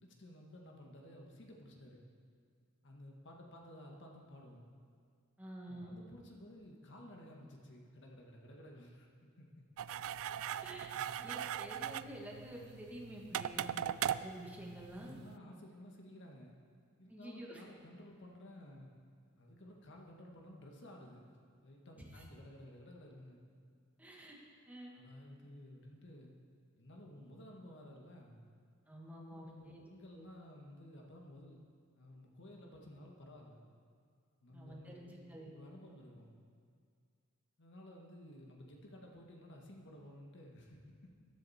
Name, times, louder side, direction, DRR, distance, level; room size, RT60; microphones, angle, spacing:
voice 1, 0.0-2.0 2.8-4.7 5.7-9.5 10.9-11.1 15.0-16.5 17.0-18.9 19.4-23.5 24.9-26.3 26.8-28.4 29.3-31.7 31.9-33.6 34.4-36.4 37.6-41.3, left 1 dB, 55° left, 0 dB, 1.7 m, -54 dB
voice 2, 5.4-6.0 10.6-10.9 11.2-15.2 17.1-17.6 22.1-22.2 24.0-24.4 24.7-24.9 28.9-29.9 34.5-35.5, equal, 5° right, -2 dB, 1.6 m, -49 dB
sound 1, 9.8-15.3, right 10 dB, 65° right, 0.3 m, -40 dB
14.5 x 10.5 x 4.3 m, 2.2 s
head